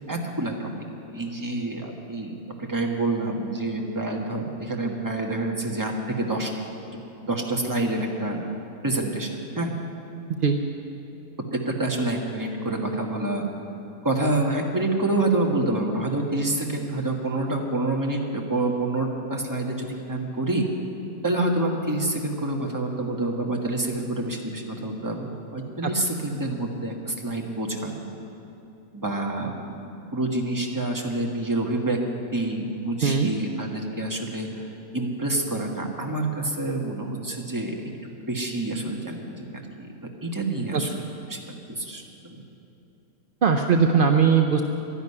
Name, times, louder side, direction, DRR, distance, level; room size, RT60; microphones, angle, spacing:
voice 1, 0.1-0.7 1.1-6.5 7.2-8.4 8.8-9.7 11.5-13.4 14.0-20.7 21.2-28.1 28.9-32.0 32.3-37.9 38.3-39.9 40.2-41.0 41.3-42.4, right 2 dB, 15° right, 0 dB, 1.3 m, -27 dB
voice 2, 33.0-33.3 40.7-40.8 43.4-44.6, right 6 dB, 60° right, 4 dB, 0.5 m, -19 dB
12.0 x 11.0 x 9.7 m, 2.9 s
omnidirectional pair, 1.7 m